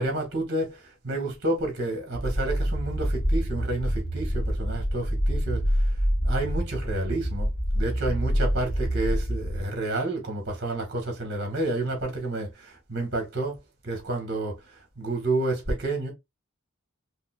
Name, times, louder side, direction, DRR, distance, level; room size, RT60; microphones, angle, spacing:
voice 1, 0.0-5.8 6.2-13.6 13.8-14.6 15.0-16.1, right 2 dB, 50° right, 1.6 m, -30 dB
sound 1, 2.1-9.6, equal, 50° left, 0.9 m, -26 dB
5.2 x 2.1 x 2.4 m
head